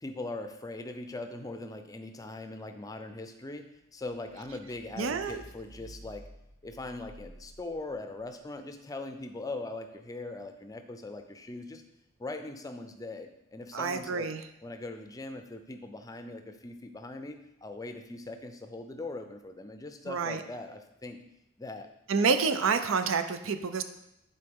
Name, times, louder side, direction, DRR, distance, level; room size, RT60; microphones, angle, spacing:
voice 1, 0.0-6.2 6.6-11.8 12.2-14.3 14.6-21.2 21.6-21.9, left 2 dB, 15° left, 7 dB, 0.5 m, -41 dB
sound 1, 4.0-8.3, equal, 40° right, 1.1 m, -52 dB
voice 2, 5.0-5.4 13.7-14.4 20.1-20.4 22.1-23.8, right 5 dB, 85° right, 9 dB, 0.6 m, -28 dB
9.7 x 4.2 x 3.6 m, 0.85 s
head